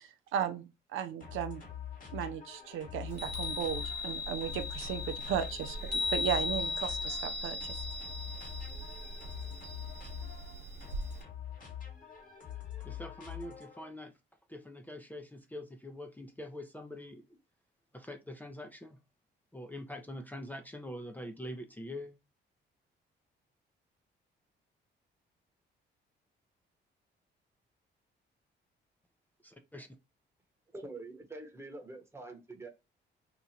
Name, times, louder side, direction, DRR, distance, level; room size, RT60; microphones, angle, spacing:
voice 1, 0.0-1.6 2.1-7.8, right 9 dB, 85° right, 0.5 m, -36 dB
sound 1, 1.2-14.0, left 10 dB, 45° left, 1.5 m, -44 dB
Chime, 3.1-11.2, left 3 dB, 50° right, 1.3 m, -38 dB
voice 2, 12.8-14.1 14.5-17.4 17.9-19.0 19.5-22.2 29.4-29.9, left 1 dB, 10° left, 0.5 m, -44 dB
voice 3, 30.7-32.7, right 2 dB, 15° right, 1.0 m, -45 dB
2.9 x 2.4 x 4.1 m
cardioid pair, 90°, 20 cm